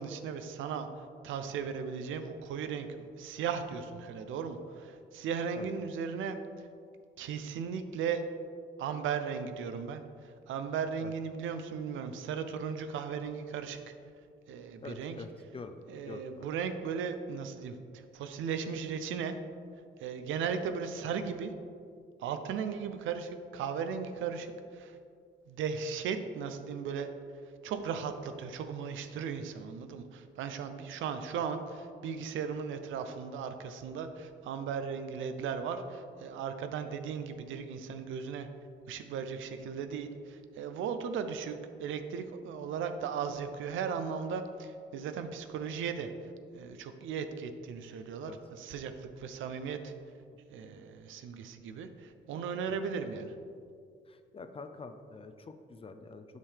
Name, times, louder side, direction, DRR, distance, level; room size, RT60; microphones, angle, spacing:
voice 1, 0.0-6.4 7.2-8.2 8.8-13.8 14.5-15.2 15.9-19.4 20.0-21.5 22.2-25.0 25.5-27.1 27.6-38.5 38.9-46.1 46.5-49.9 50.5-53.3, right 6 dB, 80° right, 8 dB, 0.5 m, -37 dB
voice 2, 14.8-15.8 16.1-16.5 48.2-48.4 52.7-52.8 54.1-56.3, left 4 dB, 30° left, 8 dB, 0.5 m, -46 dB
7.2 x 5.6 x 3.3 m, 2.3 s
cardioid pair, 90°, 20 cm